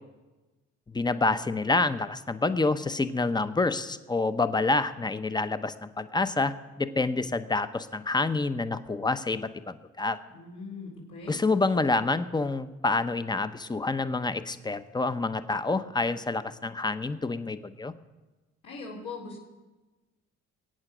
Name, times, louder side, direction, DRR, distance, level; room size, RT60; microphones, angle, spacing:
voice 1, 0.9-10.2 11.3-17.9, left 3 dB, 15° left, 11 dB, 0.8 m, -28 dB
voice 2, 10.3-11.4 18.6-19.4, left 4 dB, 80° left, -5 dB, 4.0 m, -40 dB
21.5 x 8.9 x 6.2 m, 1.2 s
cardioid pair, 90°, 30 cm